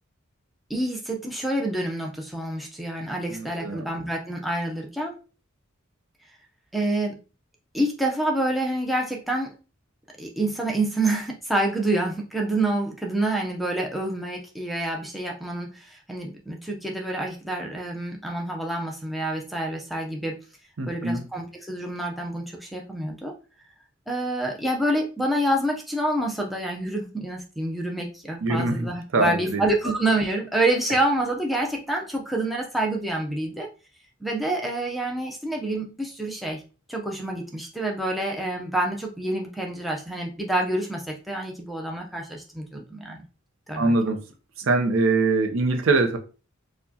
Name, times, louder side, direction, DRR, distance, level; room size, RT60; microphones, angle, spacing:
voice 1, 0.7-5.2 6.7-7.2 7.7-9.5 10.2-20.4 20.9-23.3 24.1-33.7 34.2-36.6 36.9-43.2 43.7-44.0, right 1 dB, ahead, -1 dB, 0.5 m, -27 dB
voice 2, 3.3-3.8 20.8-21.2 28.4-29.6 43.8-44.2 44.6-46.2, right 3 dB, 70° right, 5 dB, 0.6 m, -23 dB
4.5 x 2.2 x 2.7 m, 0.34 s
head